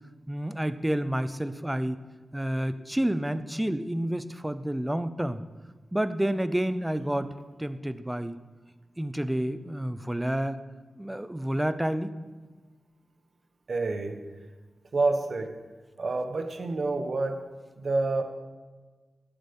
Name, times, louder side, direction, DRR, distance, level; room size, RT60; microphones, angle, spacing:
voice 1, 0.3-2.0 2.3-5.4 5.9-7.3 7.6-8.4 9.0-10.6 11.0-12.1, right 1 dB, 10° right, 12 dB, 0.6 m, -29 dB
voice 2, 13.7-14.2 14.9-15.5 16.0-17.4 17.8-18.2, right 3 dB, 50° right, 6 dB, 1.5 m, -28 dB
17.0 x 8.7 x 5.5 m, 1.4 s
wide cardioid pair, 140°, 0 cm